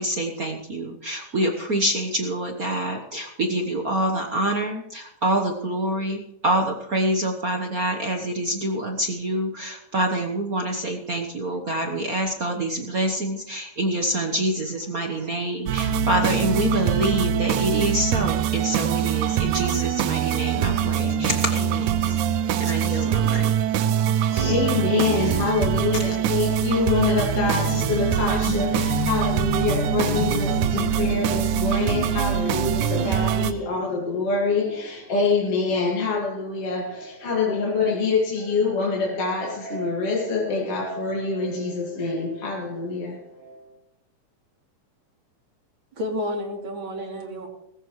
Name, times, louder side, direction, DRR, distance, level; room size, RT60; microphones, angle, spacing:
voice 1, 0.0-22.2 22.6-23.5 24.3-24.6, right 1 dB, 60° right, 0.9 m, -26 dB
sound 1, 15.7-33.5, right 10 dB, 85° right, 2.2 m, -23 dB
Guitar, 15.8-23.5 23.8-34.3, left 12 dB, 85° left, 2.7 m, -36 dB
voice 2, 24.3-43.7, left 4 dB, 55° left, 3.1 m, -25 dB
voice 3, 45.9-47.5, left 1 dB, 40° right, 3.9 m, -30 dB
19.0 x 16.0 x 3.2 m
omnidirectional pair, 3.4 m